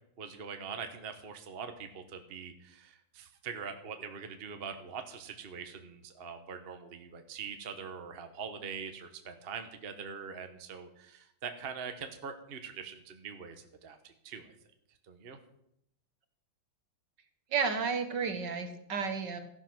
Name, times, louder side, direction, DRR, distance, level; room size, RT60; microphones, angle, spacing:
voice 1, 0.2-14.5 15.1-15.4, right 6 dB, 35° right, 6 dB, 1.2 m, -43 dB
voice 2, 17.5-19.4, right 5 dB, 60° right, 7 dB, 1.8 m, -32 dB
14.5 x 11.0 x 6.2 m, 0.76 s
omnidirectional pair, 2.3 m